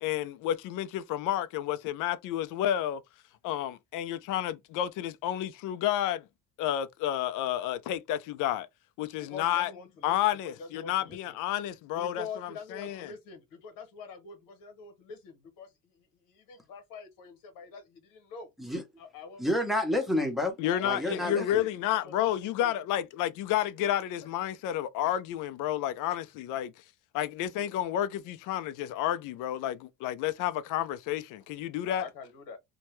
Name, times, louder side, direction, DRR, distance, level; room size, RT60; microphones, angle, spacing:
voice 1, 0.0-3.0 3.4-6.2 6.6-8.7 9.0-9.7 10.0-13.1 20.6-26.7 27.1-32.1, left 11 dB, 65° left, 0.5 m, -30 dB
voice 2, 9.2-11.4 12.0-18.5 19.0-19.4 20.6-21.6 22.0-22.8 24.2-24.3 31.9-32.6, left 5 dB, 90° left, 1.1 m, -45 dB
voice 3, 19.4-20.6 20.8-21.6, left 1 dB, ahead, 0.7 m, -29 dB
2.7 x 2.2 x 3.1 m
cardioid pair, 155°, 34 cm